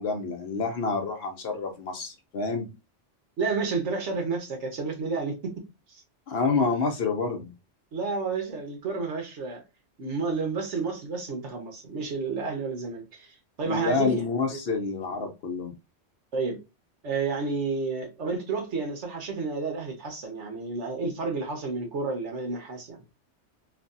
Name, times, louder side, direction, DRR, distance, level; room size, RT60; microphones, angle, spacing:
voice 1, 0.0-2.7 6.3-7.5 13.6-15.7, left 4 dB, 60° left, 0.9 m, -28 dB
voice 2, 3.4-6.0 7.9-9.6 10.0-14.2 14.5-14.6 16.3-16.6 17.0-23.0, right 4 dB, 75° right, 1.3 m, -31 dB
3.2 x 2.3 x 2.5 m
omnidirectional pair, 1.2 m